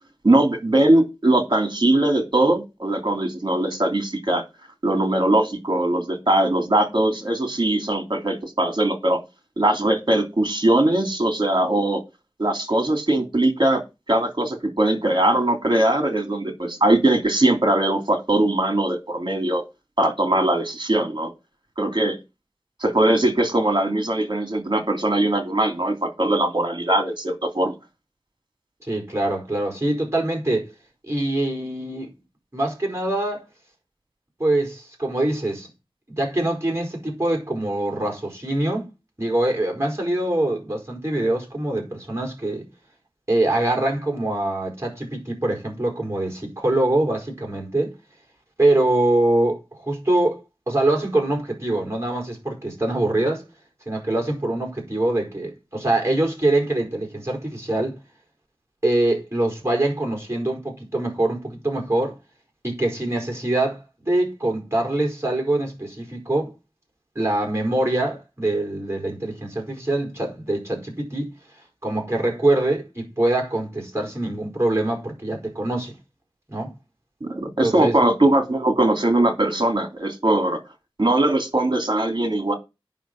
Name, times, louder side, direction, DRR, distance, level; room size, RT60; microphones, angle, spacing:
voice 1, 0.2-4.4 4.8-9.2 9.6-12.0 12.4-13.8 14.1-19.6 20.0-21.3 21.8-22.2 22.8-27.7 77.2-80.6 81.0-82.6, right 1 dB, 55° right, 3.0 m, -20 dB
voice 2, 28.8-30.7 31.0-32.1 32.5-33.4 34.4-35.7 36.1-38.9 39.2-42.7 43.3-47.9 48.6-53.4 53.9-58.0 58.8-62.2 62.6-66.5 67.1-71.3 71.8-76.0 76.5-76.7 77.6-78.0, right 1 dB, 30° right, 4.6 m, -24 dB
9.1 x 6.1 x 5.9 m
wide cardioid pair, 50°, 9 cm